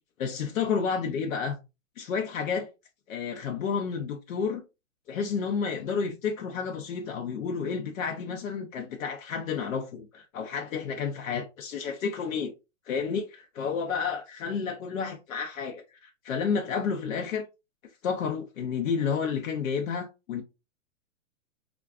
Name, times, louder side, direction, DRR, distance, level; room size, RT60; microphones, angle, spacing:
voice 1, 0.2-1.6 2.0-2.7 3.1-4.6 5.1-12.5 12.9-17.5 18.0-20.4, left 6 dB, 85° left, 0.7 m, -31 dB
3.5 x 2.2 x 2.4 m
hypercardioid pair, 160°, 40 cm